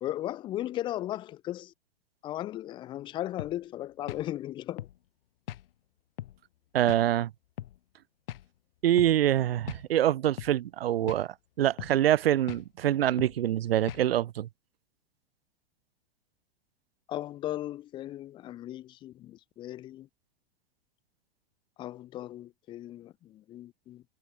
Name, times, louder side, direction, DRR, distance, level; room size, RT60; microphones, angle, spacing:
voice 1, 0.0-1.7 2.2-4.9 17.1-20.1 21.8-24.0, left 13 dB, 20° left, 0.3 m, -37 dB
sound 1, 3.4-3.6 4.1-4.3 4.8-5.0 5.5-5.7 6.2-6.4 6.9-7.0 7.6-7.8 8.3-8.5 9.0-9.1 9.7-9.8 10.4-10.6 11.1-11.3 11.8-12.0 12.5-12.7 13.2-13.4 13.9-14.1, left 13 dB, 70° left, 1.0 m, -40 dB
voice 2, 6.7-7.3 8.8-14.5, right 12 dB, 85° right, 0.5 m, -25 dB
hypercardioid pair, 110°, 29 cm